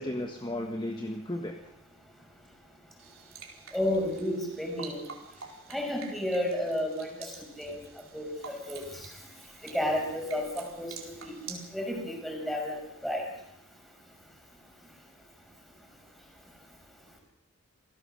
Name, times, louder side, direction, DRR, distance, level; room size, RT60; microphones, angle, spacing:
voice 1, 0.0-1.7 5.4-5.6, left 1 dB, 20° left, 3 dB, 1.5 m, -35 dB
sound 1, 3.0-11.7, right 6 dB, 65° right, 4.3 m, -48 dB
voice 2, 3.7-5.0 5.7-7.8 8.1-9.1 9.6-10.9 11.2-13.3, left 1 dB, ahead, 1 dB, 5.9 m, -32 dB
28.0 x 17.0 x 6.6 m, 0.75 s
head